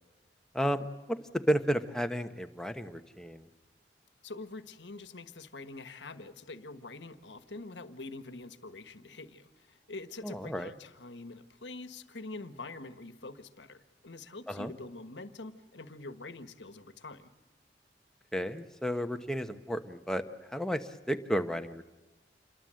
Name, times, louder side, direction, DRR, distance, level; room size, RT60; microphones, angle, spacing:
voice 1, 0.5-3.5 10.2-10.7 14.5-14.7 18.3-20.2 20.5-21.9, equal, 5° left, 7 dB, 1.1 m, -32 dB
voice 2, 4.2-17.3, left 3 dB, 85° left, 11 dB, 1.5 m, -45 dB
28.0 x 22.5 x 7.7 m, 1.1 s
head